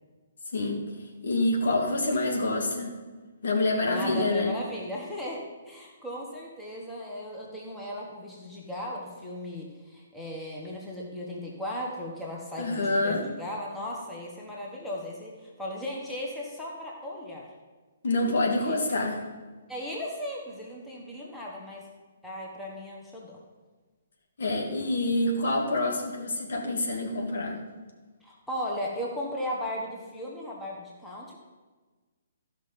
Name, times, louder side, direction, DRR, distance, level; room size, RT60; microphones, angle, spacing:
voice 1, 0.5-0.8 1.2-3.0 3.4-4.6 12.6-13.3 18.0-19.2 24.4-27.6, left 2 dB, 55° left, 1 dB, 1.7 m, -27 dB
voice 2, 3.9-17.5 18.6-19.1 19.7-21.9 22.2-23.4 28.2-31.4, left 1 dB, 5° left, -3 dB, 1.7 m, -36 dB
13.5 x 5.9 x 5.2 m, 1.3 s
figure-of-eight pair, 130°, 0 cm